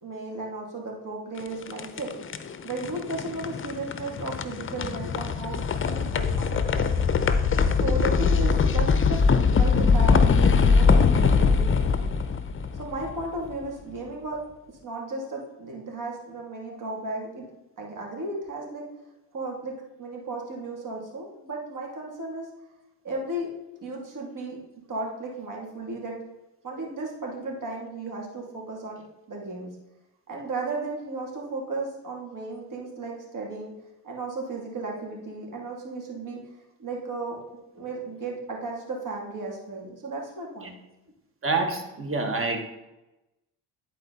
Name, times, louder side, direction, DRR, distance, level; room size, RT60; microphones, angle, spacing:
voice 1, 0.0-2.1 2.6-6.9 7.6-12.2 12.8-14.4 14.8-17.4 17.8-18.8 19.3-22.5 23.0-23.5 23.8-24.6 24.9-26.2 26.6-29.0 29.3-29.7 30.3-33.7 34.0-36.4 36.8-37.4 37.7-40.8, right 2 dB, 50° right, -1 dB, 2.9 m, -35 dB
sound 1, 1.4-13.5, left 5 dB, 30° left, 0.7 m, -22 dB
voice 2, 41.4-42.6, right 3 dB, 30° right, 4 dB, 1.7 m, -27 dB
10.0 x 4.5 x 4.2 m, 0.97 s
supercardioid pair, 70°, 41 cm